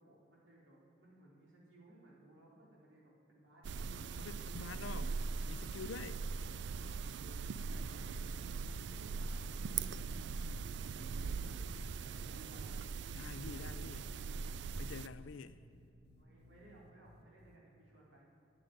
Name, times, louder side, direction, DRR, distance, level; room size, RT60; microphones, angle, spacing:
voice 1, 0.0-5.3 7.6-10.1 11.2-11.7 12.1-12.9 13.3-14.2 16.2-18.3, right 1 dB, 85° right, -4 dB, 4.0 m, -62 dB
sound 1, 3.6-15.1, right 4 dB, 65° right, 0.4 m, -41 dB
voice 2, 4.2-5.1 5.5-6.3 13.1-14.1 14.8-15.6, left 5 dB, 90° left, 12 dB, 0.5 m, -47 dB
sound 2, 7.2-8.4 8.7-8.9 9.4-12.2 12.5-13.7 14.0-14.2 14.7-17.6, left 1 dB, 55° left, 1.0 m, -61 dB
10.0 x 9.4 x 9.9 m, 2.6 s
head